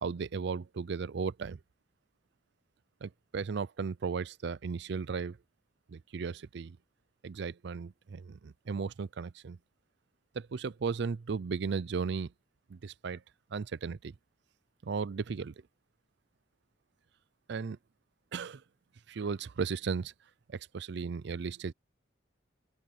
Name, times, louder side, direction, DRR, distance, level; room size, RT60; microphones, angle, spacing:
voice 1, 0.0-1.6 3.0-5.4 5.9-6.8 7.2-9.6 10.3-12.3 12.7-13.2 13.5-14.1 14.8-15.5 17.5-17.8 18.3-18.6 19.1-20.1 20.5-21.7, right 5 dB, 65° right, 0.5 m, -35 dB
head